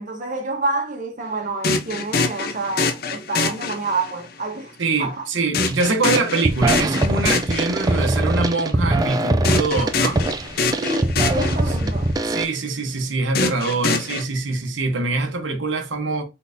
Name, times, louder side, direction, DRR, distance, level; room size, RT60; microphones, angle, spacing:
voice 1, 0.0-4.7 5.0-5.2 10.8-12.1, right 2 dB, 40° right, 1.0 m, -28 dB
sound 1, 1.6-4.3 5.5-8.2 9.4-12.1 13.3-14.2, left 4 dB, 50° left, 0.6 m, -24 dB
voice 2, 4.8-10.2 12.2-16.2, right 3 dB, 70° right, 0.9 m, -24 dB
sound 2, 5.6-5.9 6.2-12.4, right 2 dB, 20° right, 0.3 m, -22 dB
4.0 x 3.9 x 2.6 m
head